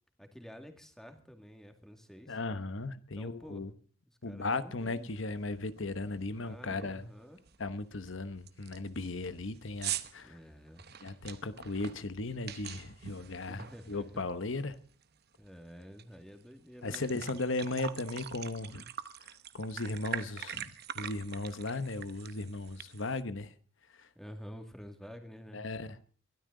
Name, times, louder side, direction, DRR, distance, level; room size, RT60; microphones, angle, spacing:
voice 1, 0.2-2.4 3.1-3.7 4.2-5.1 6.4-7.4 10.2-10.9 13.5-14.3 15.4-17.3 24.2-25.7, equal, ahead, 2.2 m, -49 dB
voice 2, 2.3-3.7 4.2-7.1 7.6-10.4 11.0-13.6 13.9-14.8 16.8-18.9 19.5-23.5 25.5-26.0, left 2 dB, 65° left, 1.1 m, -36 dB
sound 1, 5.1-5.2 5.6-5.9 6.2-6.3 6.7-7.0 7.5-7.6 8.1-8.2 8.5-14.4 14.7-16.0 16.4-16.5 16.8-23.2, right 10 dB, 50° right, 1.0 m, -43 dB
22.5 x 13.0 x 3.9 m
head